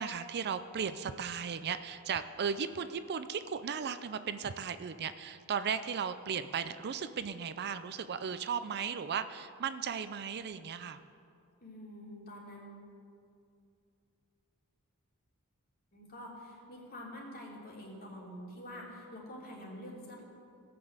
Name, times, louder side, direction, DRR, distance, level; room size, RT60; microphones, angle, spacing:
voice 1, 0.0-11.0, right 6 dB, 50° right, 12 dB, 0.5 m, -36 dB
voice 2, 11.6-12.8 15.9-20.2, equal, 45° left, -3 dB, 3.1 m, -47 dB
17.5 x 6.0 x 7.9 m, 2.5 s
head